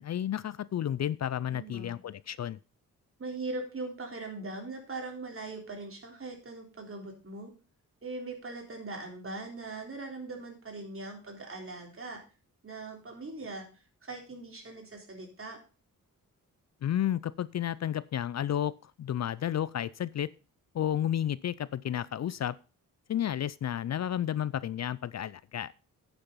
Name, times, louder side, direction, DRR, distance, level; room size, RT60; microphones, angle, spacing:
voice 1, 0.0-2.6 16.8-20.3 20.7-22.5 23.1-25.7, left 10 dB, 55° left, 0.4 m, -32 dB
voice 2, 1.5-2.0 3.2-7.5 8.0-12.2 12.6-15.6, right 3 dB, 40° right, 3.7 m, -40 dB
9.7 x 6.9 x 5.5 m
cardioid pair, 90°, 32 cm